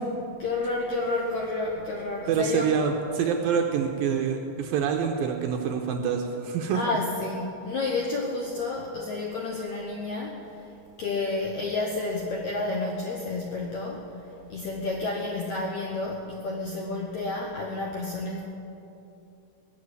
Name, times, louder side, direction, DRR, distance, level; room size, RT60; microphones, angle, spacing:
voice 1, 0.4-2.7 6.7-10.4 11.0-14.0 14.5-18.4, left 3 dB, 75° left, 0 dB, 1.7 m, -30 dB
voice 2, 2.3-6.8, right 7 dB, 75° right, 3 dB, 2.3 m, -26 dB
20.5 x 7.6 x 8.3 m, 2.8 s
omnidirectional pair, 4.8 m